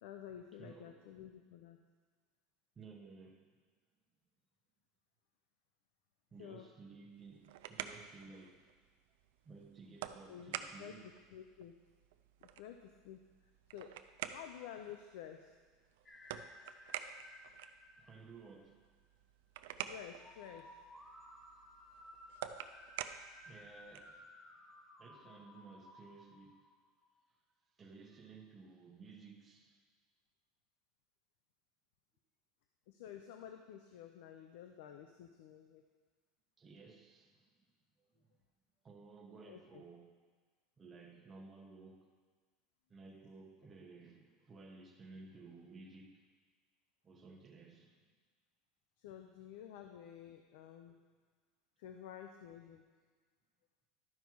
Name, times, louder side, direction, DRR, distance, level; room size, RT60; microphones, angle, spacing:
voice 1, 0.0-1.8 6.4-6.7 10.3-10.5 10.8-11.0 11.3-11.8 12.4-12.8 13.0-13.2 13.7-13.9 14.3-15.5 19.9-20.7 32.9-35.8 39.4-39.8 49.0-51.0 51.8-52.8, left 9 dB, 80° left, 5 dB, 0.6 m, -51 dB
voice 2, 0.6-1.2 2.7-3.4 6.3-8.7 9.4-11.1 18.0-18.8 23.4-24.4 25.0-26.5 27.8-29.8 36.6-37.5 38.0-38.3 38.8-40.1 40.8-42.1 42.9-46.2 47.0-48.0, right 4 dB, 20° right, 1 dB, 1.2 m, -56 dB
sound 1, 7.1-24.2, right 10 dB, 85° right, 0.4 m, -49 dB
sound 2, 16.1-18.9 20.2-27.3, left 1 dB, 15° left, 1.0 m, -58 dB
12.0 x 5.5 x 4.7 m, 1.5 s
supercardioid pair, 150°, 0 cm